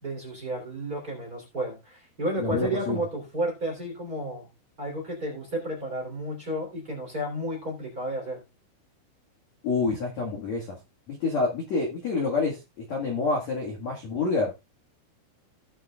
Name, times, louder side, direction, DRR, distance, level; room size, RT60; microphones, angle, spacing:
voice 1, 0.0-4.5 4.8-8.4, right 1 dB, 20° right, -1 dB, 2.9 m, -32 dB
voice 2, 2.4-3.1 9.6-10.8 11.1-14.5, left 3 dB, 55° left, 0 dB, 2.0 m, -28 dB
18.0 x 6.3 x 2.3 m, 0.24 s
omnidirectional pair, 5.7 m